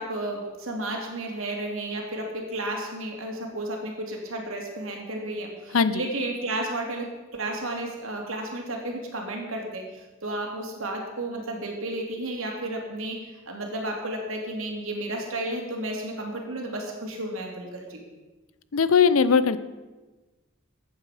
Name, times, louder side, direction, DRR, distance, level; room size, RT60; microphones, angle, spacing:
voice 1, 0.0-18.0, right 1 dB, 80° right, 1 dB, 2.7 m, -32 dB
voice 2, 5.7-6.0 18.7-19.6, left 6 dB, 85° left, 14 dB, 0.6 m, -19 dB
14.0 x 8.9 x 5.0 m, 1.2 s
head